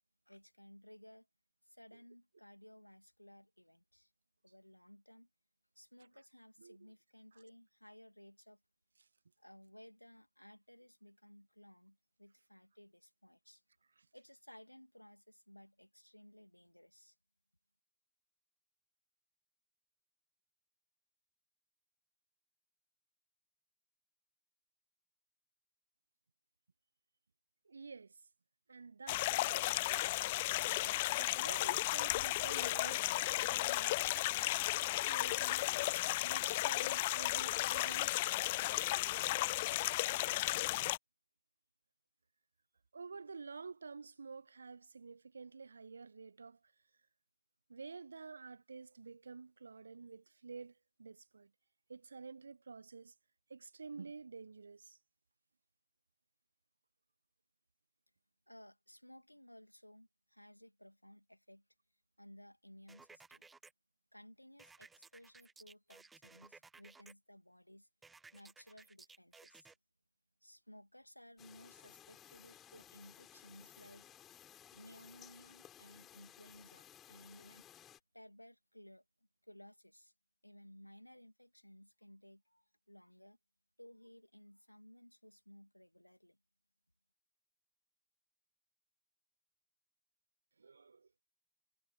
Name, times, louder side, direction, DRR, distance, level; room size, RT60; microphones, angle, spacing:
voice 1, 0.3-1.3 1.7-4.1 4.4-5.3 5.8-8.6 9.4-13.6 14.1-17.1 58.5-61.6 62.2-63.5 64.1-67.9 68.3-69.7 70.4-74.1 74.7-77.9 78.1-79.0 79.4-80.1 80.4-83.4 83.8-86.4, left 1 dB, 90° left, 2.7 m, -59 dB
voice 2, 27.7-28.1 28.7-29.7 31.1-33.0 33.5-34.0 34.3-34.5 35.0-35.6 36.2-38.2 39.2-39.6 42.9-46.6 47.7-51.5 51.9-53.1 53.5-55.0 90.6-91.2, right 4 dB, 75° right, 0.7 m, -50 dB
sound 1, 29.1-41.0, left 18 dB, 50° left, 0.4 m, -34 dB
sound 2, 62.9-63.7 64.6-67.1 68.0-69.7, right 4 dB, 10° right, 1.1 m, -59 dB
sound 3, 71.4-78.0, left 10 dB, 30° left, 4.1 m, -59 dB
figure-of-eight pair, 90°, 0 cm